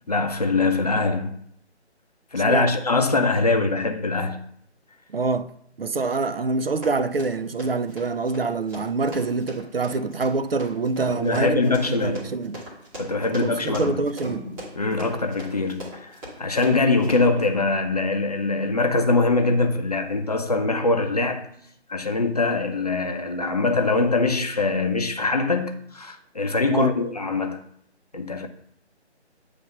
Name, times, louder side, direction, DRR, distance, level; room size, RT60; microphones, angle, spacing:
voice 1, 0.1-1.4 2.3-4.4 11.1-12.3 12.9-14.0 14.7-21.5 21.9-27.6 28.1-28.5, left 3 dB, 35° left, 0.6 m, -23 dB
voice 2, 5.1-5.5 5.8-11.7 12.0-12.6 13.4-14.5 26.7-26.9, right 3 dB, 60° right, 0.6 m, -25 dB
Run, 6.7-17.4, right 1 dB, 5° right, 1.2 m, -39 dB
9.1 x 3.3 x 5.4 m
figure-of-eight pair, 150°, 34 cm